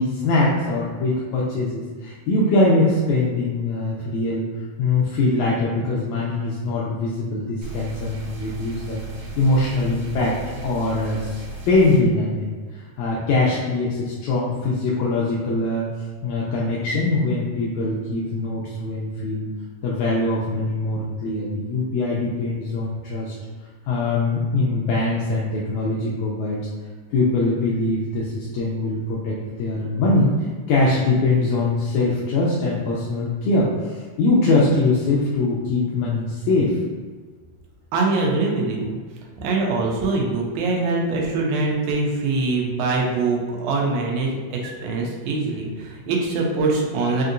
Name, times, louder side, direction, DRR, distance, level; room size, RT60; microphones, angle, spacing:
voice 1, 0.0-4.5 4.8-9.0 9.4-15.9 16.2-19.5 19.8-23.3 23.9-26.6 27.1-30.3 30.7-36.7, left 2 dB, 80° left, -6 dB, 2.0 m, -22 dB
sound 1, 7.6-12.0, right 3 dB, 70° right, 2.0 m, -36 dB
voice 2, 37.9-39.0 39.4-47.2, right 3 dB, 85° right, -1 dB, 2.2 m, -23 dB
5.5 x 2.7 x 2.5 m, 1.5 s
omnidirectional pair, 3.3 m